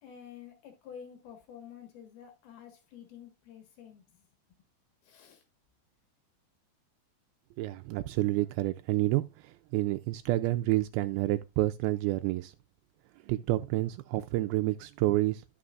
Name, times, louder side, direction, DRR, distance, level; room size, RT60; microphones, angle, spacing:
voice 1, 0.0-4.2 5.0-5.4, left 8 dB, 80° left, 3.5 m, -50 dB
voice 2, 7.6-12.5 13.2-15.4, right 17 dB, 85° right, 2.4 m, -29 dB
13.0 x 6.1 x 2.5 m
omnidirectional pair, 4.4 m